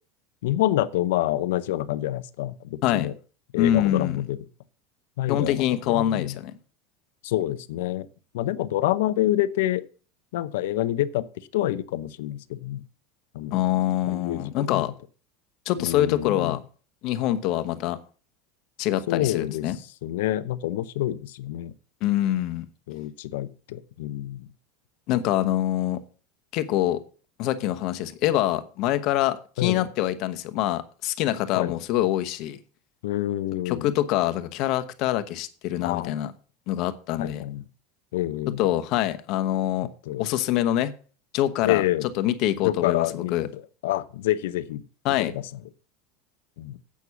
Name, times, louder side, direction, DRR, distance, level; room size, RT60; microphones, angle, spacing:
voice 1, 0.4-3.1 3.5-4.4 5.2-6.4 7.2-8.1 8.3-9.8 10.3-11.3 11.5-12.8 13.3-13.6 14.1-14.9 15.8-16.6 19.1-19.7 20.0-21.7 22.9-24.5 29.6-29.9 31.5-31.7 33.0-33.9 35.8-36.2 37.2-37.7 38.1-38.6 40.1-40.3 41.6-42.1 42.6-44.8 45.3-45.5 46.6-46.8, left 14 dB, 75° left, 0.6 m, -27 dB
voice 2, 3.6-4.2 5.3-6.5 13.5-14.9 15.7-16.6 17.0-18.0 18.8-19.8 22.0-22.6 25.1-26.0 26.5-27.0 27.4-32.6 33.6-36.3 36.7-37.4 38.6-39.9 40.2-40.9 41.3-43.5 45.0-45.3, left 13 dB, 60° left, 1.0 m, -25 dB
8.4 x 6.2 x 7.0 m
hypercardioid pair, 100°, 0 cm